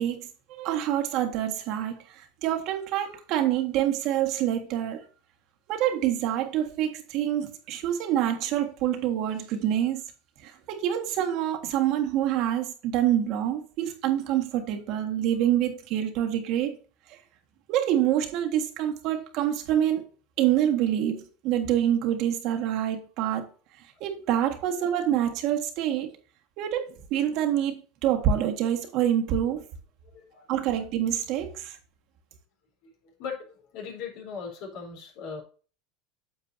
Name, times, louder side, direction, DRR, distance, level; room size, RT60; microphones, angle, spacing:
voice 1, 0.0-5.0 5.7-10.0 10.4-16.8 17.1-17.2 17.7-20.0 20.4-23.5 24.0-26.1 26.6-29.6 30.5-31.8, right 11 dB, 55° right, 1.6 m, -26 dB
voice 2, 30.0-30.5 32.8-35.4, left 6 dB, 65° left, 3.8 m, -39 dB
9.0 x 7.3 x 2.7 m
supercardioid pair, 130°, 0 cm